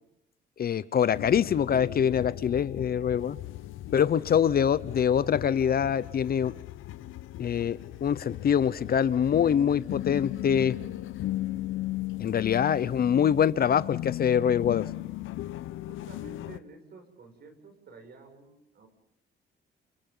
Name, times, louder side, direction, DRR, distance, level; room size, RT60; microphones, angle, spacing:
voice 1, 0.6-3.4 3.9-6.5 7.4-10.8 12.2-14.9, left 8 dB, 50° left, 17 dB, 0.8 m, -24 dB
sound 1, 1.1-16.6, left 15 dB, 80° left, 0.8 m, -37 dB
voice 2, 12.5-13.0 15.9-18.9, right 3 dB, 55° right, 6 dB, 6.7 m, -51 dB
29.0 x 27.0 x 3.9 m, 0.79 s
cardioid pair, 90°, 20 cm